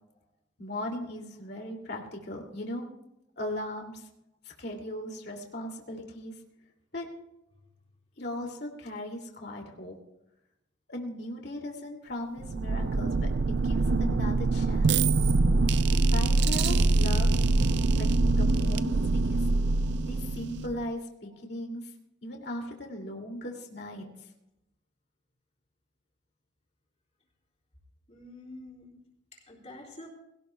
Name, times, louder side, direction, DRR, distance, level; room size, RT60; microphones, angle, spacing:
voice 1, 0.6-2.9 3.4-4.1 4.4-6.4 6.9-7.1 8.2-10.0 10.9-15.0 16.1-17.3 18.0-19.5 20.0-21.9 22.2-24.1, left 1 dB, 55° left, 2.5 m, -38 dB
sound 1, 12.4-20.9, right 3 dB, 55° right, 0.5 m, -24 dB
voice 2, 28.1-29.0 29.3-30.1, left 1 dB, 35° left, 3.9 m, -47 dB
21.0 x 17.5 x 2.3 m
head